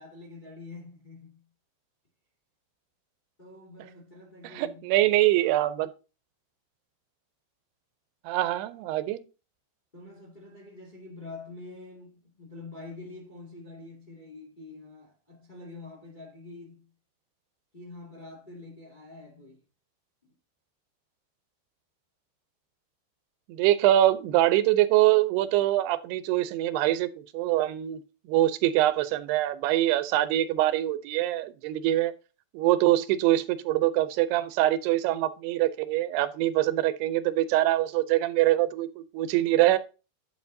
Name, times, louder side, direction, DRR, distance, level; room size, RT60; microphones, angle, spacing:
voice 1, 0.0-1.4 3.4-4.9 9.9-16.9 17.7-19.6 20.2-20.3, left 3 dB, 30° left, 0.8 m, -46 dB
voice 2, 4.4-5.9 8.3-9.2 23.5-28.0 28.3-32.1 32.5-39.8, right 14 dB, 80° right, 2.6 m, -24 dB
9.6 x 8.8 x 2.7 m
omnidirectional pair, 5.0 m